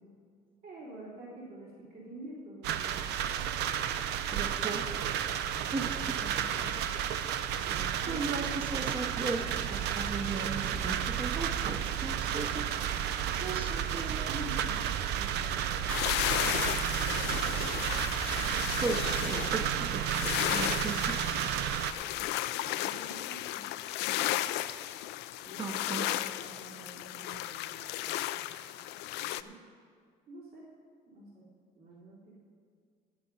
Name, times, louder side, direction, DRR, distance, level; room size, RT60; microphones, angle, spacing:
voice 1, 0.6-3.1 5.8-6.8 7.6-8.7 14.3-14.8 15.1-17.8 18.2-18.8 22.0-22.2 22.6-23.6 25.4-28.4 29.2-29.6 30.3-30.7 31.1-31.5 31.8-32.4, right 1 dB, 65° right, -6 dB, 3.5 m, -48 dB
sound 1, 2.6-21.9, right 10 dB, 85° right, 0.6 m, -32 dB
voice 2, 4.3-4.9 5.7-6.2 8.1-12.7 13.4-14.3 18.6-21.4 25.6-26.1, right 4 dB, 30° right, 5 dB, 0.8 m, -37 dB
sound 2, 9.2-18.9, right 2 dB, 45° right, 2.1 m, -45 dB
sound 3, 15.9-29.4, left 14 dB, 90° left, 0.4 m, -34 dB
13.0 x 9.1 x 5.4 m, 2.1 s
cardioid pair, 110°, 17 cm